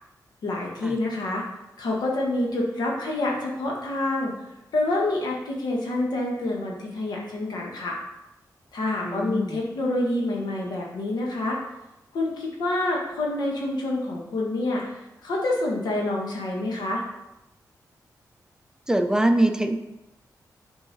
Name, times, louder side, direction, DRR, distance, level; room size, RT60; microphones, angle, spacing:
voice 1, 0.4-1.4 1.8-4.3 4.7-8.0 8.7-11.6 12.1-17.0, left 2 dB, 90° left, -1 dB, 1.5 m, -27 dB
voice 2, 9.1-9.6 18.9-19.8, right 1 dB, 10° right, 6 dB, 0.6 m, -23 dB
6.9 x 4.7 x 4.1 m, 0.94 s
cardioid pair, 75°, 7 cm